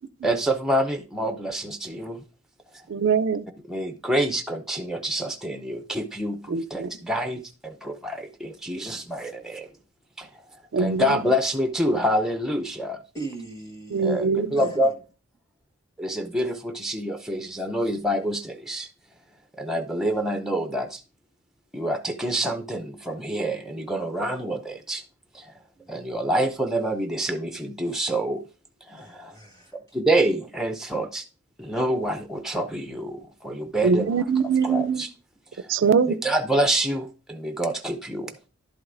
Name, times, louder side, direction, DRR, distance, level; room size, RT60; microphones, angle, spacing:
voice 1, 0.2-2.2 3.7-9.7 10.2-10.3 10.8-13.0 14.0-14.3 14.5-14.9 16.0-18.9 19.6-21.0 21.7-25.0 25.3-25.5 25.9-28.4 28.9-29.4 29.9-31.2 31.6-34.2 34.6-35.1 35.5-35.7 36.1-38.3, right 1 dB, ahead, 0.5 m, -27 dB
voice 2, 2.9-3.5 6.5-6.9 10.7-11.2 13.9-14.6 33.8-35.0 35.7-36.2, right 5 dB, 60° right, 0.4 m, -23 dB
voice 3, 13.1-14.9 25.8-25.9 29.0-29.7 33.6-33.7, right 2 dB, 15° left, 1.4 m, -39 dB
11.0 x 7.9 x 2.5 m
head